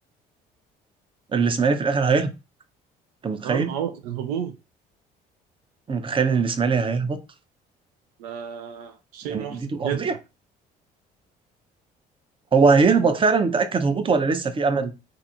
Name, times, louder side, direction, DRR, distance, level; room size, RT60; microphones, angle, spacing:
voice 1, 1.3-2.3 3.2-3.7 5.9-7.2 9.3-10.1 12.5-14.9, right 4 dB, 25° right, 0.5 m, -21 dB
voice 2, 3.4-4.6 8.2-10.0, right 9 dB, 85° right, 0.4 m, -31 dB
2.5 x 2.4 x 2.7 m
supercardioid pair, 65°, 20 cm